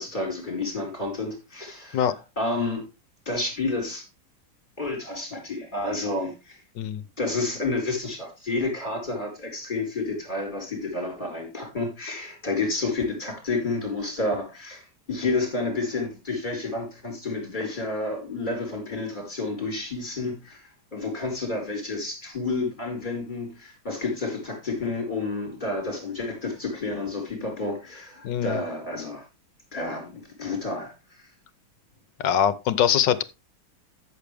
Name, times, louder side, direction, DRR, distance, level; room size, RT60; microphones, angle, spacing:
voice 1, 0.0-2.0 2.4-2.8 3.2-4.1 4.8-6.6 7.2-29.2 29.7-31.2, left 3 dB, 20° left, 4.9 m, -30 dB
voice 2, 28.2-28.6 32.2-33.2, left 9 dB, 65° left, 1.4 m, -23 dB
13.5 x 7.6 x 3.5 m
omnidirectional pair, 2.2 m